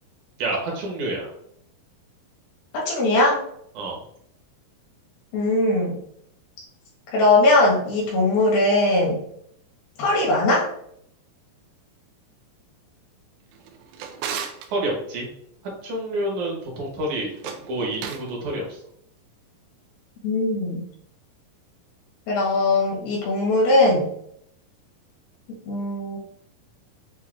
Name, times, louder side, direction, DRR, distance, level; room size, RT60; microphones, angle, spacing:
voice 1, 0.4-1.3 3.8-4.0 14.7-15.3 15.8-17.3 17.7-18.6, right 1 dB, 65° right, -2 dB, 2.3 m, -28 dB
voice 2, 2.7-3.4 5.3-6.0 7.1-9.2 10.0-10.7 20.2-20.8 22.3-24.1 25.5-26.2, left 2 dB, 80° left, -4 dB, 3.4 m, -20 dB
Drawer open or close, 13.5-14.7 17.3-18.3, right 8 dB, 90° right, 2.5 m, -34 dB
8.0 x 2.7 x 2.5 m, 0.70 s
omnidirectional pair, 4.2 m